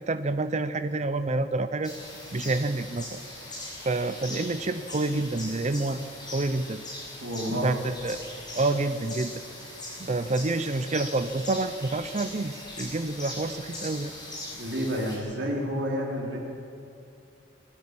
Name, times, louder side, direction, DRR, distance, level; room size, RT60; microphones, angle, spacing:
voice 1, 0.0-1.9 2.3-3.2 3.8-6.0 6.3-6.8 7.5-8.2 8.6-9.4 10.0-14.1, right 2 dB, 35° right, 10 dB, 0.6 m, -28 dB
sound 1, 1.8-15.2, left 1 dB, 20° left, 6.7 m, -40 dB
voice 2, 7.2-7.7 14.6-16.4, equal, 60° right, -2 dB, 4.4 m, -29 dB
22.5 x 14.0 x 8.6 m, 2.7 s
head